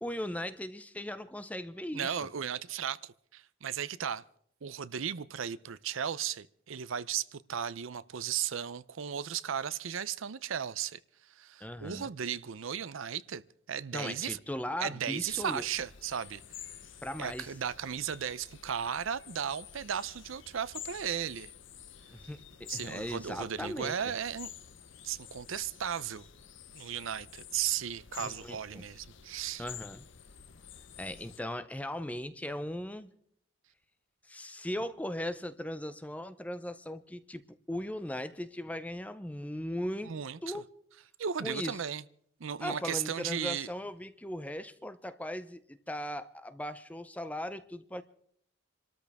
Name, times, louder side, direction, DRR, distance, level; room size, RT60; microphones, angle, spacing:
voice 1, 0.0-2.2 11.6-12.1 13.9-15.7 17.0-17.5 22.1-24.0 28.2-28.8 29.6-30.1 31.0-33.1 34.2-40.1 40.4-40.6 41.4-41.8 42.6-48.0, left 1 dB, 5° left, 0.6 m, -38 dB
voice 2, 1.9-4.2 4.6-11.0 11.3-13.4 13.7-14.4 14.8-16.7 17.2-21.5 22.7-24.5 25.0-26.2 26.7-29.6 40.0-40.5 41.2-42.0 42.4-43.7, right 8 dB, 75° right, 0.5 m, -35 dB
sound 1, 15.3-31.4, left 9 dB, 65° left, 0.8 m, -50 dB
27.0 x 13.5 x 3.5 m
head